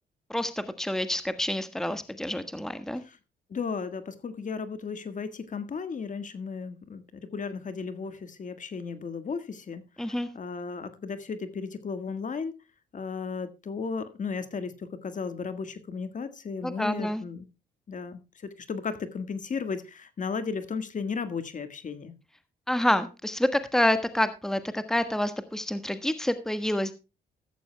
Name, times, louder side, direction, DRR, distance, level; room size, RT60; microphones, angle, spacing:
voice 1, 0.3-3.0 10.0-10.3 16.6-17.2 22.7-26.9, left 1 dB, 5° left, 1.4 m, -28 dB
voice 2, 3.5-12.5 12.9-17.5 17.9-22.1, left 5 dB, 45° left, 1.6 m, -35 dB
14.0 x 14.0 x 2.2 m
cardioid pair, 70°, 18 cm